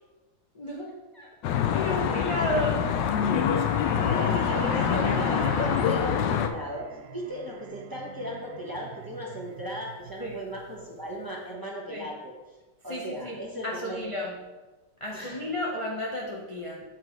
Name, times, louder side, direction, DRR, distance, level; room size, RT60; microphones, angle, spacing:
voice 1, 0.5-0.9 1.7-2.8 10.2-10.4 11.9-12.1 12.9-13.4 13.6-14.3 15.0-16.8, left 1 dB, 40° left, -3 dB, 0.4 m, -32 dB
Traffic noise roadway noise, 1.4-6.5, left 8 dB, 85° left, 1.3 m, -25 dB
sound 1, 3.2-11.2, right 7 dB, 70° right, 0.9 m, -40 dB
voice 2, 3.8-12.6 12.8-14.3 15.1-15.4, equal, 15° right, -3 dB, 0.9 m, -37 dB
7.7 x 4.5 x 4.5 m, 1.2 s
omnidirectional pair, 1.9 m